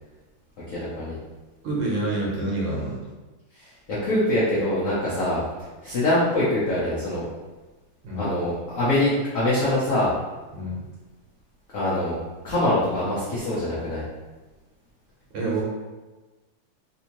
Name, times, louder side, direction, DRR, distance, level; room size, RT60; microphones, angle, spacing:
voice 1, 0.7-1.2 3.5-7.3 8.2-10.1 11.7-12.2 12.4-14.1, left 1 dB, 75° left, -9 dB, 0.7 m, -24 dB
voice 2, 1.6-3.0 8.0-8.3 10.5-10.8 15.3-15.6, right 2 dB, 70° right, -4 dB, 1.4 m, -27 dB
3.4 x 2.7 x 2.9 m, 1.2 s
omnidirectional pair, 2.4 m